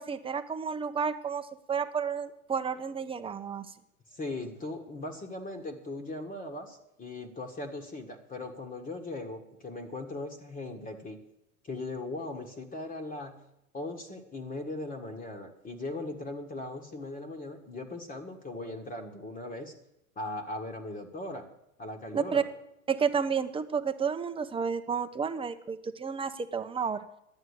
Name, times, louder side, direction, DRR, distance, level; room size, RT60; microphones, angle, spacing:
voice 1, 0.0-3.7 22.1-22.4 22.9-27.0, right 6 dB, 15° right, 8 dB, 0.8 m, -31 dB
voice 2, 4.1-11.2 11.6-13.4 13.7-19.7 20.1-21.5 21.8-22.5, left 2 dB, 20° left, 4 dB, 1.5 m, -39 dB
11.5 x 8.9 x 8.2 m, 0.81 s
hypercardioid pair, 90°, 42 cm